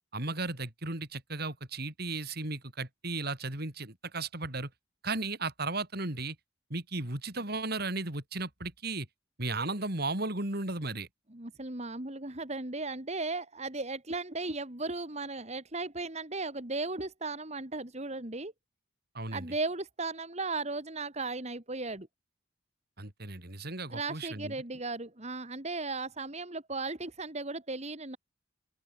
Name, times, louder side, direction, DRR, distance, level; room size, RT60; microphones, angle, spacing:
voice 1, 0.1-4.7 5.0-6.4 6.7-9.1 9.4-11.1 19.1-19.5 23.0-24.5, right 3 dB, 55° right, 4.0 m, -35 dB
voice 2, 11.3-18.5 19.3-22.1 23.9-28.2, right 3 dB, 35° right, 2.6 m, -36 dB
open air
head